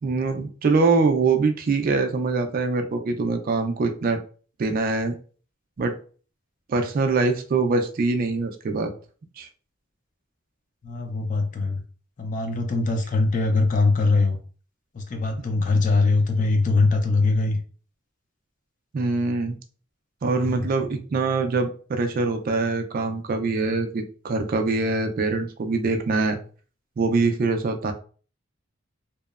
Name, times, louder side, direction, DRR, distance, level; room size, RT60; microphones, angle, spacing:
voice 1, 0.0-4.2 4.6-5.2 5.8-5.9 6.7-8.9 9.4-9.5 15.4-15.5 18.9-19.6 20.2-26.4 27.0-27.9, right 3 dB, 45° right, 5 dB, 0.3 m, -23 dB
voice 2, 10.8-11.8 12.2-14.4 14.9-17.6 20.4-20.6, left 3 dB, 40° left, 6 dB, 0.4 m, -22 dB
2.9 x 2.0 x 2.3 m, 0.40 s
head